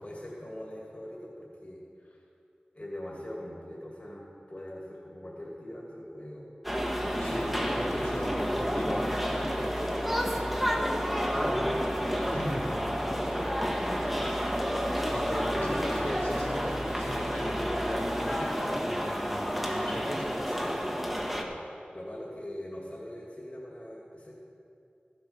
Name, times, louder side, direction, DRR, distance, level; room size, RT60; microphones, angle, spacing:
voice 1, 0.0-1.8 2.7-6.5 10.1-10.5 11.3-14.7 20.5-21.0 21.2-21.6 21.9-24.3, left 1 dB, 40° left, -4 dB, 2.6 m, -42 dB
sound 1, 6.6-21.4, equal, 5° right, 1.3 m, -30 dB
sound 2, 7.0-19.0, equal, 35° right, 1.9 m, -42 dB
voice 2, 7.2-9.6 11.3-11.7 12.3-12.6 15.1-20.3, left 1 dB, 90° left, -8 dB, 3.1 m, -37 dB
14.0 x 7.9 x 5.8 m, 2.5 s
wide cardioid pair, 50°, 3 cm